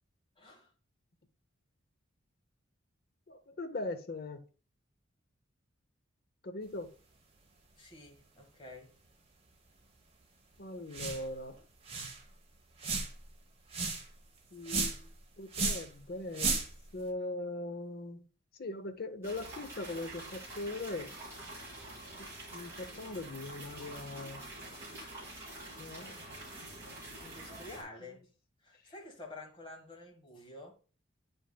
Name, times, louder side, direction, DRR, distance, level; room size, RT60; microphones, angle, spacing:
voice 1, 0.4-0.7 7.8-9.0 11.1-11.4 25.3-25.4 27.2-28.3 28.6-30.7, left 2 dB, 25° left, 1.3 m, -50 dB
voice 2, 3.3-4.4 6.4-6.9 10.6-11.6 14.5-16.5 16.9-18.3 18.6-21.2 22.2-24.4 25.8-26.4, left 2 dB, 50° left, 0.6 m, -40 dB
sound 1, 10.9-11.3 11.6-11.7 11.8-12.2 12.8-13.2 13.7-14.1 14.6-15.1 15.5-15.9 16.3-16.8, right 3 dB, 30° right, 0.9 m, -33 dB
sound 2, 19.2-27.8, right 1 dB, 15° right, 3.4 m, -47 dB
8.9 x 5.2 x 2.2 m
head